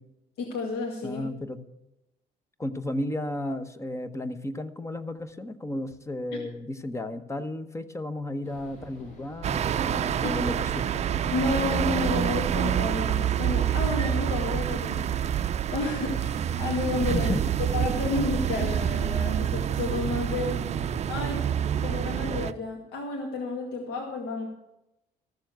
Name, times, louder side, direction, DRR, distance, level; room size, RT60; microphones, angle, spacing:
voice 1, 0.4-1.2 10.2-10.4 11.3-15.1 15.7-17.3 17.6-20.6 21.1-21.5 21.8-24.5, left 3 dB, 80° left, 0 dB, 2.1 m, -31 dB
voice 2, 1.0-1.6 2.6-11.2 17.1-17.4 20.5-21.0, left 1 dB, 15° left, 12 dB, 0.9 m, -34 dB
sound 1, 8.4-21.0, left 1 dB, 45° left, 6.1 m, -46 dB
sound 2, 9.4-22.5, right 9 dB, 40° right, 0.5 m, -27 dB
14.0 x 7.0 x 7.9 m, 0.90 s
cardioid pair, 110°, 17 cm